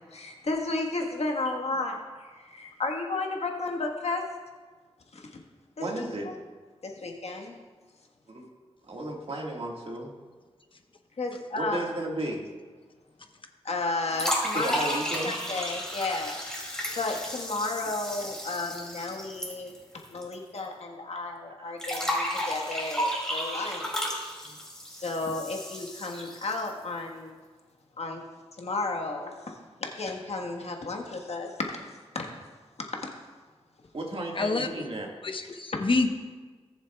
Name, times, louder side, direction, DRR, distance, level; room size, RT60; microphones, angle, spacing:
voice 1, 0.1-4.2 5.1-5.4 5.8-6.3 6.8-7.6 11.2-11.8 13.6-16.4 16.6-19.7 20.1-24.2 24.9-27.4 28.0-28.2 28.6-29.6 30.0-31.6 32.1-32.3 33.0-33.1 35.7-35.8, left 3 dB, 70° left, 1 dB, 1.4 m, -33 dB
voice 2, 5.8-6.3 8.3-8.5 8.9-10.1 11.6-12.4 14.5-15.3 21.6-21.7 24.4-24.6 33.9-35.1, right 1 dB, 60° right, -1 dB, 1.8 m, -34 dB
Sparkling water, 14.1-20.3 20.6-20.7 21.8-26.8, equal, 5° left, 2.6 m, -33 dB
voice 3, 34.3-34.9 35.2-36.1, left 3 dB, 50° left, 5 dB, 0.9 m, -27 dB
18.0 x 7.2 x 2.3 m, 1.4 s
wide cardioid pair, 65°, 11 cm